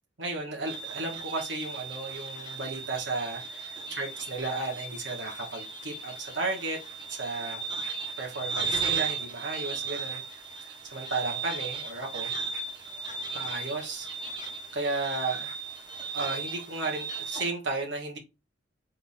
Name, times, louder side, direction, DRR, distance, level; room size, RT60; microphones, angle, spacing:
voice 1, 0.2-6.8 7.1-7.6 8.2-10.2 10.6-12.3 13.3-14.1 14.7-15.5 16.1-18.2, right 3 dB, 65° right, 1.4 m, -34 dB
sound 1, 0.7-17.4, right 4 dB, 25° right, 1.0 m, -36 dB
3.7 x 3.6 x 2.7 m
head